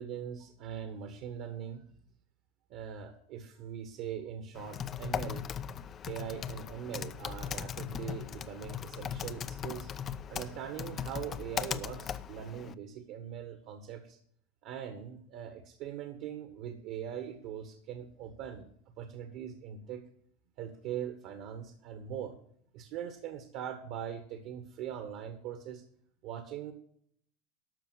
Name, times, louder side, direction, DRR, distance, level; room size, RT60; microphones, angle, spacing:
voice 1, 0.0-1.8 2.7-5.4 6.1-9.9 10.3-14.2 14.6-18.7 19.0-20.0 20.6-22.4 22.7-25.8 26.2-26.7, right 9 dB, 60° right, 8 dB, 1.6 m, -41 dB
Typing, 4.5-12.7, left 8 dB, 35° left, 0.6 m, -39 dB
12.5 x 6.3 x 6.3 m, 0.64 s
hypercardioid pair, 90°, 0 cm